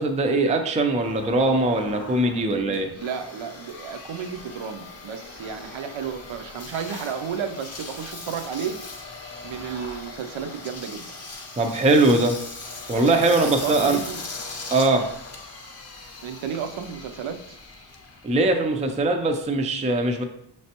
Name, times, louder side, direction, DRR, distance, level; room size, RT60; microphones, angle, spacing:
voice 1, 0.0-2.9 11.6-12.4 12.9-14.0 14.7-15.0 18.2-20.2, right 2 dB, 15° right, 4 dB, 0.3 m, -21 dB
Engine, 1.0-19.4, left 3 dB, 30° left, 0.6 m, -39 dB
voice 2, 2.3-8.8 9.4-11.1 13.4-14.2 16.2-17.6, right 7 dB, 70° right, 7 dB, 0.5 m, -33 dB
5.9 x 3.2 x 2.8 m, 0.74 s
wide cardioid pair, 150°, 49 cm